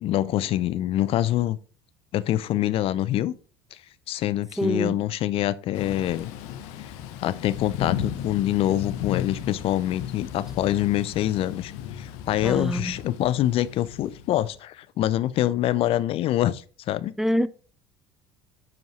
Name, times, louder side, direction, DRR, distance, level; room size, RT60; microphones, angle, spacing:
voice 1, 0.0-1.6 2.1-3.3 3.7-3.8 4.1-6.3 6.8-6.9 7.2-17.1, left 13 dB, 50° left, 0.5 m, -25 dB
voice 2, 4.6-5.0 12.4-12.9 17.2-17.5, equal, 5° right, 0.5 m, -25 dB
Thunder / Rain, 5.7-14.6, left 9 dB, 65° left, 0.9 m, -35 dB
9.3 x 5.2 x 3.1 m
hypercardioid pair, 70°, 12 cm